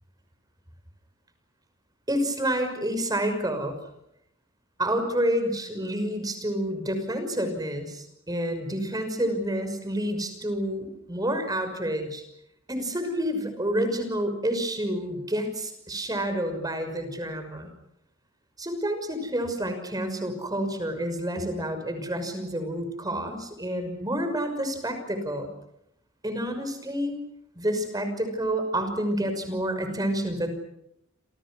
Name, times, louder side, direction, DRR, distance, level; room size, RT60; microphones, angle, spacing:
voice 1, 2.1-3.8 4.8-12.2 12.7-17.7 18.6-25.5 26.2-27.2 27.5-30.5, right 1 dB, 20° right, 8 dB, 5.9 m, -29 dB
28.5 x 28.0 x 6.4 m, 0.78 s
head